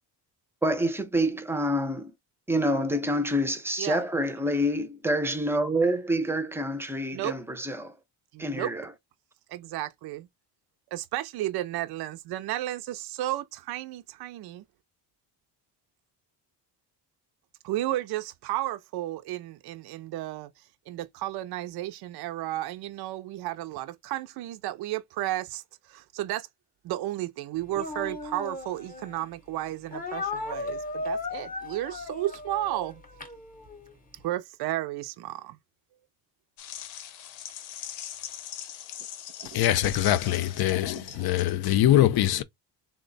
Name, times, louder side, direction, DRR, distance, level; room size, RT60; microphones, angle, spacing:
voice 1, 0.6-2.1 2.5-7.9 8.4-8.9, equal, 5° right, 0.6 m, -27 dB
voice 2, 8.3-8.7 9.5-10.3 10.9-14.6 17.6-20.5 20.9-26.5 26.8-33.0 34.2-35.6 39.4-39.7 41.0-41.5, right 15 dB, 55° right, 0.5 m, -33 dB
Speech, 27.7-29.3 29.9-33.9, left 2 dB, 20° left, 0.9 m, -36 dB
sound 1, 36.6-41.8, left 10 dB, 85° left, 0.9 m, -41 dB
voice 3, 39.5-42.4, left 13 dB, 55° left, 0.6 m, -23 dB
3.5 x 2.2 x 3.9 m
cardioid pair, 120°, 45 cm